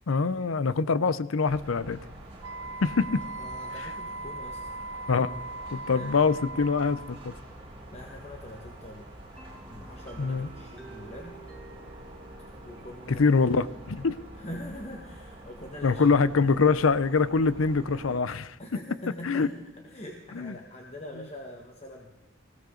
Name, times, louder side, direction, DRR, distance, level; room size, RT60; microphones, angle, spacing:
voice 1, 0.1-2.0 2.8-3.2 3.8-3.9 5.1-5.3 5.7-7.3 10.2-10.5 13.1-14.2 15.8-18.6 19.2-19.5 20.3-20.5 21.2-21.3, left 4 dB, 90° left, 16 dB, 0.6 m, -24 dB
sound 1, 1.5-18.2, right 1 dB, 25° right, 4.1 m, -47 dB
Wind instrument woodwind instrument, 2.4-7.2, right 2 dB, 60° right, 0.5 m, -39 dB
voice 2, 3.4-4.6 5.9-6.3 7.9-9.1 9.6-11.4 12.6-13.3 14.3-16.1 18.6-19.5 19.8-22.1, left 1 dB, 30° left, 1 dB, 1.5 m, -43 dB
sound 2, 9.4-17.0, right 2 dB, 5° left, 2.7 m, -53 dB
20.0 x 16.5 x 3.9 m, 1.0 s
head